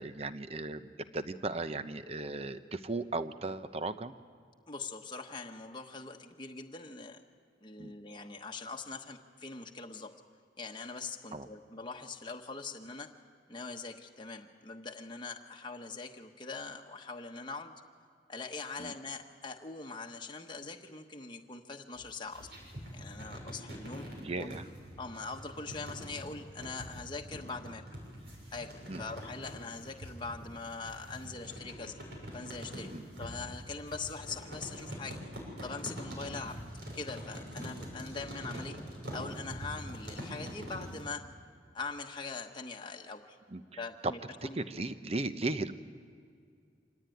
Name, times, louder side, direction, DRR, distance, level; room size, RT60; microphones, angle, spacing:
voice 1, 0.0-4.1 7.8-7.9 11.3-11.5 18.8-18.9 24.2-24.6 28.9-29.0 32.9-33.0 37.6-37.7 43.5-43.6 44.0-44.1 44.4-45.7, right 2 dB, 35° right, 11 dB, 0.8 m, -36 dB
voice 2, 4.7-7.2 7.6-10.1 10.6-13.1 13.5-17.7 18.3-22.5 22.9-24.1 24.4-24.6 25.0-27.8 28.5-31.9 32.3-32.9 33.2-35.2 35.6-36.6 36.9-38.8 39.1-41.2 41.7-43.4 43.8-44.6, left 4 dB, 25° left, 2 dB, 1.1 m, -42 dB
sound 1, 21.9-41.1, equal, 70° right, 6.6 m, -44 dB
25.5 x 18.0 x 9.4 m, 2.3 s
head